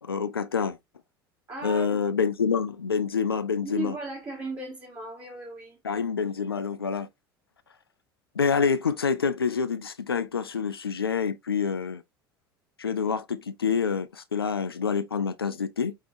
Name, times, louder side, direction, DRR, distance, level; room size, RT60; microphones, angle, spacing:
voice 1, 0.1-0.8 1.6-3.9 5.8-7.1 8.4-12.0 12.8-15.9, left 6 dB, 85° left, 0.5 m, -27 dB
voice 2, 1.5-2.0 3.6-5.8, right 2 dB, 30° right, 1.8 m, -36 dB
5.4 x 3.4 x 2.5 m
figure-of-eight pair, 70°, 12 cm